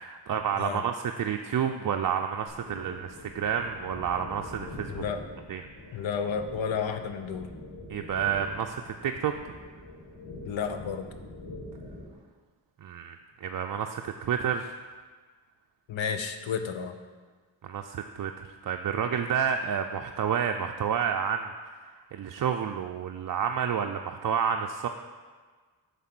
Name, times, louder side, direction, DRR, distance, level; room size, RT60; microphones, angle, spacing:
voice 1, 0.0-5.0 5.5-5.6 7.9-9.3 12.8-14.7 17.6-21.5 21.9-24.9, right 8 dB, 45° right, 4 dB, 0.4 m, -30 dB
sound 1, 2.5-12.1, left 1 dB, 90° left, 1.8 m, -44 dB
voice 2, 4.9-5.2 5.9-7.5 10.5-11.0 15.9-16.9, left 6 dB, 75° left, 8 dB, 0.7 m, -31 dB
7.2 x 3.6 x 6.0 m, 1.5 s
cardioid pair, 40°, 47 cm